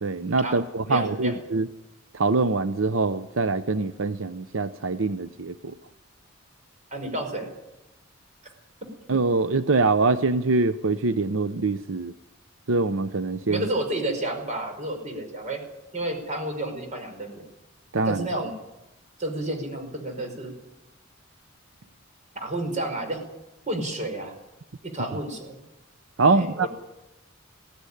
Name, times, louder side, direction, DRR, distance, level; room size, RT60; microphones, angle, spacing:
voice 1, 0.0-1.7 2.1-5.7 9.1-12.1 12.7-13.7 17.9-18.3 26.2-26.7, right 3 dB, 85° right, 12 dB, 0.7 m, -24 dB
voice 2, 0.8-1.3 6.9-7.5 13.5-15.6 15.9-17.4 18.0-18.5 19.2-20.5 22.3-23.3 23.7-24.3 24.8-25.6 26.3-26.7, right 1 dB, 40° right, 5 dB, 5.2 m, -30 dB
21.0 x 16.0 x 10.0 m, 0.97 s
head